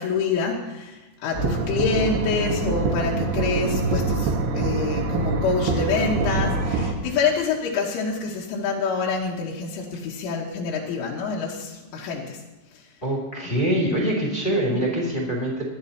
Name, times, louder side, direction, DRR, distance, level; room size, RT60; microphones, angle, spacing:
voice 1, 0.0-12.4, left 5 dB, 90° left, -3 dB, 3.8 m, -26 dB
sound 1, 1.3-6.9, right 3 dB, 65° right, 3.0 m, -25 dB
voice 2, 13.0-15.6, right 1 dB, 15° left, -3 dB, 1.7 m, -24 dB
27.5 x 11.0 x 2.9 m, 1.1 s
omnidirectional pair, 5.4 m